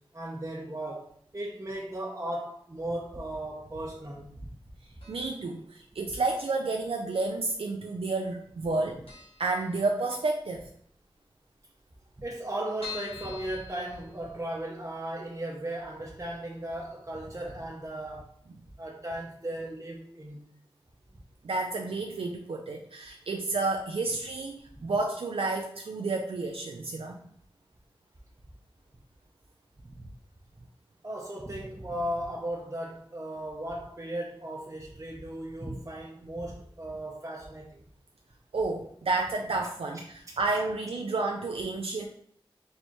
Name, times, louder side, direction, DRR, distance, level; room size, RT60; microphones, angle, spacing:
voice 1, 0.1-4.3 12.2-18.3 18.8-20.4 24.8-24.9 29.9-30.1 31.0-37.8 39.9-40.4, right 1 dB, 30° right, -4 dB, 0.7 m, -36 dB
sound 1, 5.0-5.5 5.8-5.9 6.8-7.5 7.8-8.0 8.3-8.4 8.7-8.8 9.1-10.4 10.8-10.9 11.1-11.2 11.4-11.5 12.0-14.6 15.1-15.2 15.6-15.7, left 6 dB, 80° left, 1.2 m, -45 dB
voice 2, 5.1-9.0 9.4-10.7 21.4-27.2 38.5-40.0 40.4-42.1, right 3 dB, 75° right, 2 dB, 0.4 m, -30 dB
4.2 x 3.3 x 3.0 m, 0.65 s
cardioid pair, 40°, 10 cm